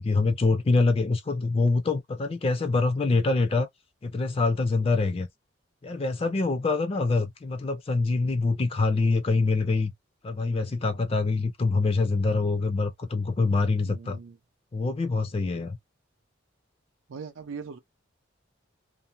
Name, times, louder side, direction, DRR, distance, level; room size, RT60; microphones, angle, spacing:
voice 1, 0.0-3.7 4.0-5.3 5.8-9.9 10.2-14.2 14.7-15.8, left 3 dB, 30° left, 0.4 m, -25 dB
voice 2, 13.8-14.4 17.1-17.8, right 5 dB, 80° right, 0.5 m, -40 dB
2.5 x 2.1 x 2.7 m
head